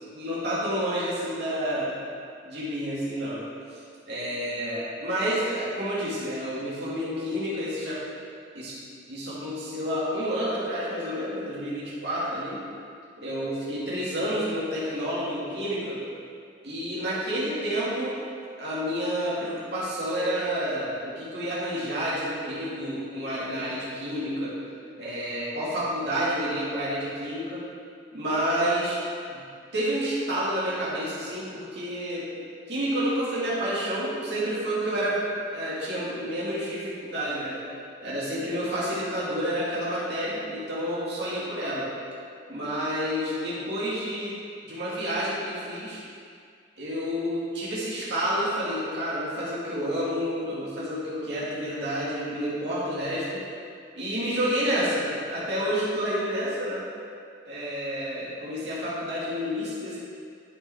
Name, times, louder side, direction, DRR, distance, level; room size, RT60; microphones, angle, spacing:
voice 1, 0.1-2.0 2.4-3.4 4.1-8.0 8.5-8.8 9.1-12.6 13.2-16.0 16.6-18.2 18.6-24.6 25.0-27.6 28.1-29.0 29.3-29.4 29.7-32.3 32.7-35.2 35.5-37.6 38.0-41.9 42.5-44.3 44.6-46.0 46.8-53.4 54.0-56.8 57.5-60.0, equal, 60° right, -9 dB, 2.2 m, -29 dB
12.0 x 5.2 x 3.6 m, 2.3 s
head